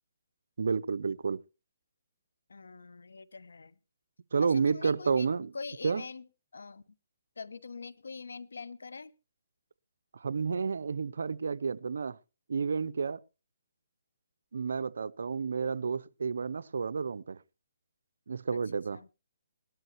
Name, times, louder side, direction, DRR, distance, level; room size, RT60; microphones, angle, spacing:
voice 1, 0.6-1.4 4.3-5.5 5.8-6.0 10.1-12.2 12.5-13.2 14.5-17.4 18.3-19.0, right 5 dB, 75° right, 0.6 m, -30 dB
voice 2, 2.5-3.7 4.4-5.3 5.5-6.3 6.5-6.8 7.4-9.1 18.9-19.1, left 4 dB, 90° left, 1.0 m, -44 dB
19.0 x 12.5 x 3.0 m
hypercardioid pair, 160°, 0 cm